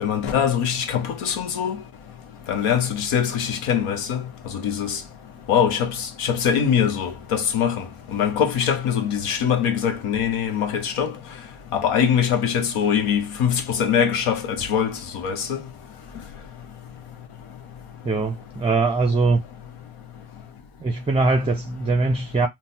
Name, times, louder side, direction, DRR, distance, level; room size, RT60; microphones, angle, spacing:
voice 1, 0.0-1.8 2.5-4.2 4.5-5.0 5.5-7.8 8.1-11.1 11.7-15.6, left 8 dB, 80° left, 0.8 m, -22 dB
voice 2, 18.0-19.4 20.8-22.5, right 3 dB, 15° right, 0.4 m, -21 dB
3.9 x 2.2 x 2.6 m
supercardioid pair, 45°, 50 cm